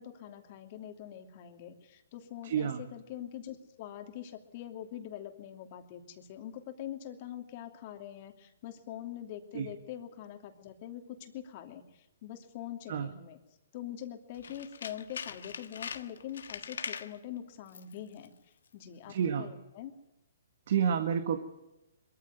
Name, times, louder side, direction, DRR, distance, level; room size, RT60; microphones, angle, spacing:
voice 1, 0.0-13.4 13.7-18.3 18.7-19.9, left 11 dB, 40° left, 5 dB, 2.8 m, -44 dB
voice 2, 2.4-2.8 9.5-9.7 12.9-13.1 19.1-19.5 20.7-21.4, right 8 dB, 60° right, 8 dB, 1.7 m, -29 dB
Tools, 14.3-17.2 17.7-18.0 18.2-18.3, left 6 dB, 75° left, 1.4 m, -41 dB
22.5 x 14.5 x 9.4 m, 0.97 s
hypercardioid pair, 140°, 0 cm